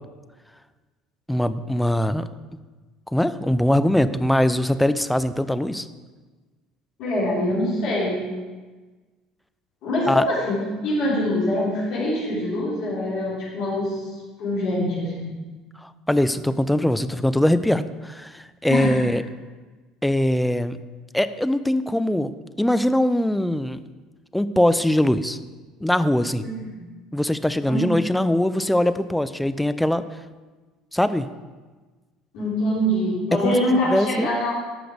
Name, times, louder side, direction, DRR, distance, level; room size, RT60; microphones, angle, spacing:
voice 1, 1.3-2.2 3.1-5.9 10.1-10.2 15.8-19.2 20.0-20.8 21.1-22.3 22.6-23.8 24.3-25.4 25.8-26.5 27.1-30.0 30.9-31.3 33.4-33.5 33.9-34.3, left 1 dB, 5° left, 12 dB, 0.6 m, -21 dB
voice 2, 7.0-8.2 9.8-14.0 14.4-15.3 18.7-19.0 26.4-26.8 27.7-27.9 32.3-34.6, left 1 dB, 65° left, -8 dB, 3.7 m, -24 dB
13.0 x 6.0 x 5.1 m, 1.3 s
hypercardioid pair, 70°, 0 cm